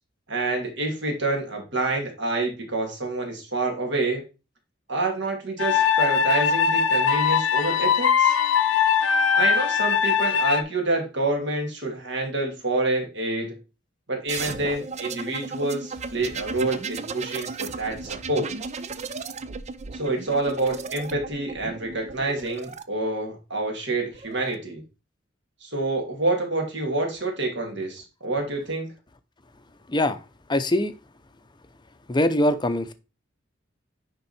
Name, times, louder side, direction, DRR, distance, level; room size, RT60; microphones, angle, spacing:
voice 1, 0.3-4.2 4.9-8.3 9.3-13.6 14.1-18.5 19.9-24.8 25.6-28.9, right 2 dB, 60° right, 2 dB, 2.6 m, -27 dB
sound 1, 5.6-10.6, left 7 dB, 85° left, 0.9 m, -21 dB
sound 2, 14.3-22.8 23.9-24.5, right 4 dB, 35° right, 0.5 m, -35 dB
voice 2, 29.9-30.2 30.5-30.9 32.1-32.9, left 1 dB, 20° left, 11 dB, 0.7 m, -22 dB
10.0 x 3.8 x 4.3 m, 0.30 s
head